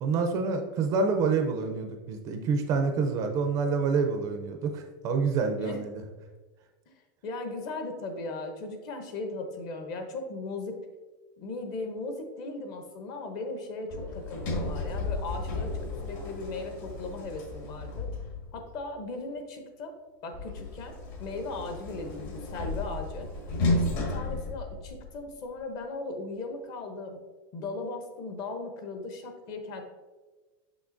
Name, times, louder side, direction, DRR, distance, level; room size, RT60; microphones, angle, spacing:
voice 1, 0.0-6.0, right 4 dB, 25° right, 5 dB, 0.4 m, -27 dB
voice 2, 7.2-10.8 11.4-18.1 18.5-19.9 20.2-20.9 21.2-23.3 24.0-27.2 27.5-29.8, left 2 dB, 35° left, 5 dB, 0.7 m, -37 dB
Sliding door, 13.9-18.7 20.3-25.3, left 2 dB, 55° left, 1.5 m, -33 dB
6.3 x 5.9 x 2.5 m, 1.3 s
supercardioid pair, 180°, 12 cm